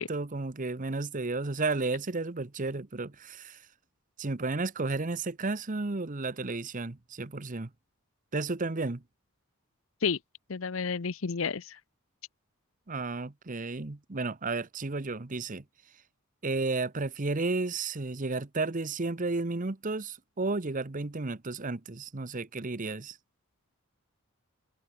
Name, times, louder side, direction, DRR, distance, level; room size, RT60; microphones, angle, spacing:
voice 1, 0.0-3.6 4.2-7.7 8.3-9.0 12.9-15.6 16.4-23.2, right 3 dB, 35° right, 0.9 m, -32 dB
voice 2, 10.5-11.8, left 5 dB, 65° left, 0.7 m, -31 dB
open air
head